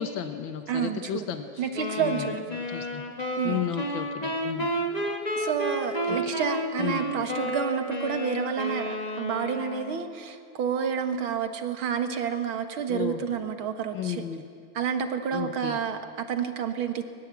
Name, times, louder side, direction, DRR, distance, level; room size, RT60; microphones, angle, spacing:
voice 1, 0.0-1.4 2.0-2.3 2.7-3.0 3.4-4.7 6.8-7.1 12.9-13.2 13.9-14.4 15.3-15.8, left 8 dB, 70° left, 8 dB, 1.9 m, -33 dB
voice 2, 0.7-1.3 1.6-2.4 3.4-3.6 5.4-14.3 14.7-17.1, right 7 dB, 85° right, 8 dB, 2.4 m, -29 dB
sound 1, 1.7-10.1, equal, 20° left, 1.8 m, -31 dB
23.0 x 22.0 x 8.4 m, 2.4 s
omnidirectional pair, 2.2 m